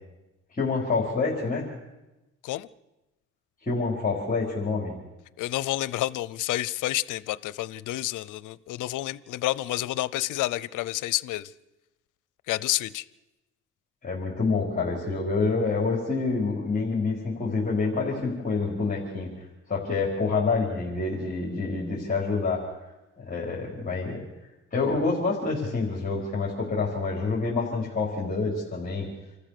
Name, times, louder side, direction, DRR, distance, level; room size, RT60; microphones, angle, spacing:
voice 1, 0.5-1.7 3.6-5.0 14.0-19.3 19.7-22.6 23.2-24.2 24.7-29.1, left 4 dB, 25° left, 4.8 m, -27 dB
voice 2, 5.4-11.5 12.5-13.0, left 16 dB, 85° left, 0.7 m, -29 dB
28.0 x 14.0 x 6.8 m
cardioid pair, 90°, 30 cm